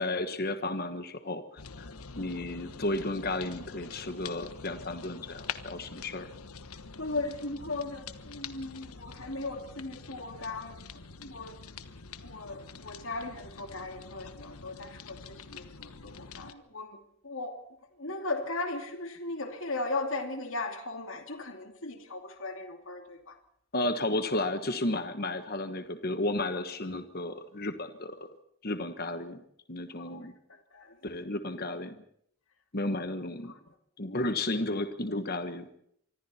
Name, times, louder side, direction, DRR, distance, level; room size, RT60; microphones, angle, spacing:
voice 1, 0.0-6.3 23.7-28.2 28.6-29.4 29.7-30.3 31.0-32.0 32.7-33.5 34.0-35.7, left 2 dB, 45° left, 1.3 m, -33 dB
sound 1, 1.6-16.5, left 5 dB, 80° left, 1.2 m, -46 dB
voice 2, 7.0-11.6 12.2-17.0 17.2-17.6 18.0-23.4 30.0-30.3 30.7-31.0 32.9-33.0 33.4-33.6, left 2 dB, 60° left, 2.6 m, -37 dB
26.0 x 24.5 x 4.3 m
head